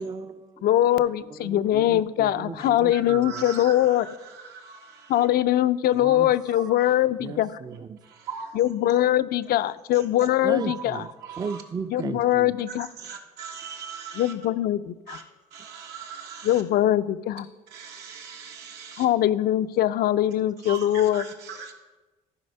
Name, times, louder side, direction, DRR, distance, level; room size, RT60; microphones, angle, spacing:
voice 1, 0.0-0.7 0.9-1.0 1.4-3.5 6.0-6.3 7.2-8.0 10.4-11.1 11.4-12.5, right 5 dB, 25° right, 0.4 m, -35 dB
voice 2, 0.6-4.1 5.1-7.6 8.5-11.0 11.9-12.9 14.2-15.2 16.4-17.5 19.0-21.2, left 13 dB, 65° left, 0.5 m, -22 dB
voice 3, 2.6-5.3 6.0-6.9 8.0-8.6 9.5-9.6 9.9-10.3 10.6-11.6 12.7-14.3 15.1-15.2 15.5-16.6 17.7-19.1 20.6-21.7, right 6 dB, 85° right, 1.6 m, -40 dB
14.0 x 5.0 x 5.4 m
cardioid pair, 110°, 17 cm